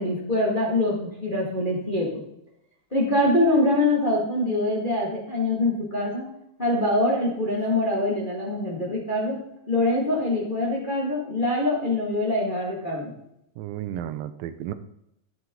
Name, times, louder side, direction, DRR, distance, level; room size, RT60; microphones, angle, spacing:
voice 1, 0.0-2.2 2.9-6.3 6.6-9.4 9.7-13.1, left 1 dB, 20° left, -3 dB, 1.4 m, -24 dB
voice 2, 13.6-14.7, right 11 dB, 85° right, 12 dB, 2.4 m, -33 dB
12.5 x 7.8 x 3.9 m, 0.79 s
omnidirectional pair, 4.0 m